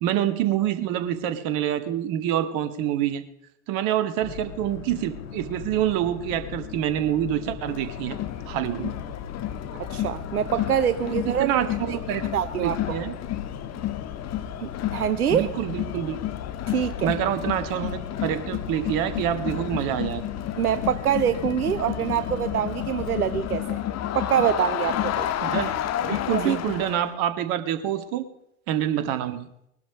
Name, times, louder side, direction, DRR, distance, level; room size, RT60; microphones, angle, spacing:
voice 1, 0.0-3.2 3.7-8.2 8.5-8.9 11.0-12.2 12.6-13.1 15.3-16.2 17.0-20.2 25.4-25.7 26.0-28.3 28.7-29.5, right 11 dB, 50° right, 10 dB, 1.9 m, -26 dB
Boat Water vehicle, 4.2-23.6, left 8 dB, 70° left, 1.8 m, -39 dB
Crowd, 7.7-27.1, left 11 dB, 35° left, 1.5 m, -31 dB
voice 2, 9.8-11.5 12.3-13.0 14.6-15.5 16.7-17.1 20.6-23.8 24.1-25.5 26.4-26.6, right 9 dB, 85° right, 12 dB, 0.7 m, -25 dB
20.5 x 12.0 x 5.1 m, 0.77 s
figure-of-eight pair, 80°, 43 cm